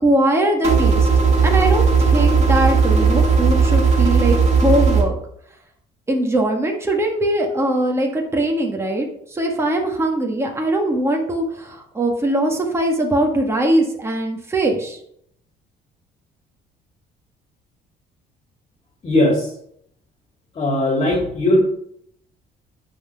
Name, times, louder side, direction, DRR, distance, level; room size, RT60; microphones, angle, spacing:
voice 1, 0.0-1.1 1.4-4.4 4.6-5.1 6.1-9.1 9.3-15.0, right 1 dB, 15° right, 1 dB, 1.8 m, -21 dB
sound 1, 0.6-5.0, right 5 dB, 40° right, 2.2 m, -16 dB
voice 2, 19.0-19.5 20.5-21.6, left 1 dB, 35° left, 0 dB, 2.3 m, -18 dB
9.9 x 4.2 x 5.7 m, 0.69 s
cardioid pair, 110°, 17 cm